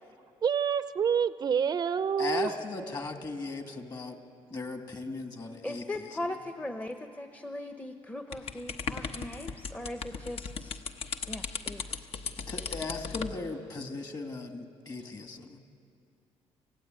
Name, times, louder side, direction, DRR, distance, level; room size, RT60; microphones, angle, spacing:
voice 1, 0.4-2.5, right 7 dB, 35° right, 13 dB, 0.5 m, -27 dB
voice 2, 2.2-4.2 4.5-6.1 12.5-15.6, left 3 dB, 35° left, 5 dB, 2.3 m, -37 dB
voice 3, 5.6-10.8 11.3-12.1, left 1 dB, 15° left, 6 dB, 0.9 m, -39 dB
sound 1, 8.3-13.4, left 5 dB, 60° left, 1.1 m, -37 dB
28.0 x 16.0 x 9.1 m, 2.4 s
cardioid pair, 110°, 11 cm